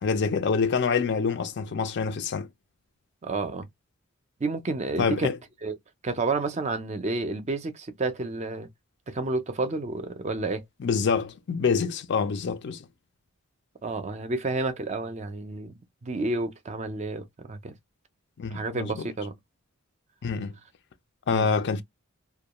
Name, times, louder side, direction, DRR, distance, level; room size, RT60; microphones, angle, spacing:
voice 1, 0.0-2.5 5.0-5.4 10.8-12.8 18.4-19.1 20.2-20.5 21.3-21.8, left 5 dB, 55° left, 0.5 m, -26 dB
voice 2, 3.2-3.7 4.4-5.3 5.6-5.8 6.0-8.7 9.1-10.6 13.8-15.7 16.0-17.7 18.5-19.4 21.3-21.5, right 3 dB, 30° right, 0.5 m, -30 dB
2.3 x 2.2 x 2.9 m
head